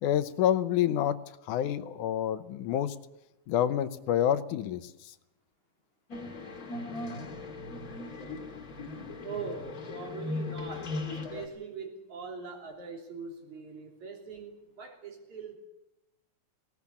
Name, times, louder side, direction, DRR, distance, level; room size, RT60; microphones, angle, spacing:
voice 1, 0.0-1.2 1.5-3.0 3.5-4.9, left 10 dB, 75° left, 13 dB, 2.3 m, -27 dB
sound 1, 6.1-11.5, left 3 dB, 30° left, 2.3 m, -38 dB
voice 2, 9.2-15.6, right 5 dB, 65° right, 2 dB, 4.8 m, -42 dB
18.5 x 18.0 x 8.5 m, 0.89 s
omnidirectional pair, 3.7 m